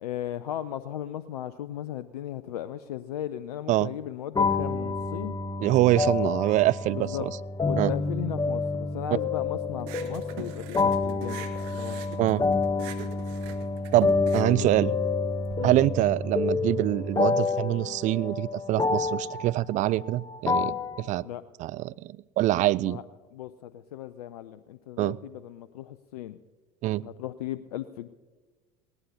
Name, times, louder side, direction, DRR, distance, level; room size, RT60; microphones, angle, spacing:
voice 1, 0.0-5.4 6.2-6.3 6.9-7.3 7.6-12.3 14.5-14.7 15.6-15.8 21.2-21.4 22.9-23.0 23.3-26.4 27.0-28.1, left 12 dB, 75° left, 15 dB, 0.5 m, -36 dB
sound 1, 4.3-21.0, left 3 dB, 20° left, 1.0 m, -28 dB
voice 2, 5.6-7.3 7.7-7.9 12.2-12.4 13.9-14.9 15.6-21.3 21.6-23.0 25.0-25.2 26.8-27.0, right 15 dB, 40° right, 20 dB, 0.4 m, -25 dB
sound 2, 9.8-15.6, right 10 dB, 60° right, 1.3 m, -44 dB
20.0 x 18.0 x 2.8 m, 1.3 s
hypercardioid pair, 70°, 20 cm